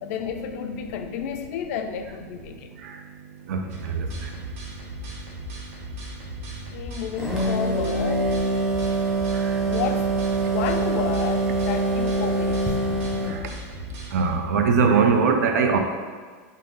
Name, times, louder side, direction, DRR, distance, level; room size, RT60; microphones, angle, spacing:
voice 1, 0.0-2.7 6.7-8.4 9.6-10.1 10.4-12.8, left 8 dB, 65° left, 6 dB, 0.4 m, -31 dB
voice 2, 3.5-4.3 9.3-9.5 13.3-13.4 14.1-15.8, right 5 dB, 90° right, 5 dB, 0.5 m, -22 dB
sound 1, 3.7-14.3, equal, 65° right, 0.9 m, -38 dB
sound 2, 7.2-13.4, right 2 dB, 5° right, 0.6 m, -24 dB
3.6 x 2.7 x 3.7 m, 1.5 s
supercardioid pair, 145°, 9 cm